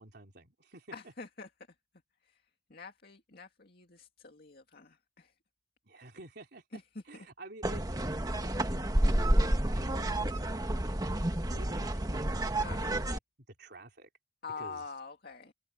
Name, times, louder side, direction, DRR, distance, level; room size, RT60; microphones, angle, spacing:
voice 1, 0.0-1.0 5.9-10.9 11.5-12.3 12.8-13.2 13.6-14.1 14.6-14.8, right 2 dB, 60° right, 3.9 m, -51 dB
voice 2, 0.9-1.5 2.3-2.4 2.7-5.3 6.7-6.8 12.6-13.0 14.4-15.5, left 4 dB, 55° left, 2.3 m, -45 dB
sound 1, 7.6-13.2, right 1 dB, 20° right, 1.4 m, -30 dB
head